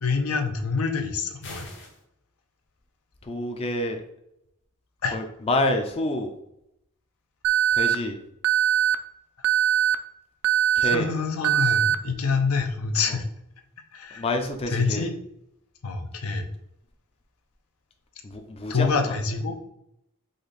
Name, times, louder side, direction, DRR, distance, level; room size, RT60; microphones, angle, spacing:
voice 1, 0.0-1.7 5.0-5.2 10.8-13.2 13.9-14.2 14.7-15.1 15.8-16.5 18.7-19.5, left 4 dB, 75° left, 5 dB, 0.6 m, -26 dB
sound 1, 1.4-2.0, left 3 dB, 55° left, 1.2 m, -42 dB
voice 2, 3.2-4.0 5.1-6.3 7.7-8.2 10.8-11.1 14.1-15.1 18.2-19.1, left 1 dB, 25° left, 4 dB, 0.4 m, -28 dB
Alarm, 7.4-7.9 8.4-8.9 9.4-9.9 10.4-10.9 11.4-11.9, right 10 dB, 60° right, 0.3 m, -21 dB
5.0 x 2.5 x 3.9 m, 0.80 s
head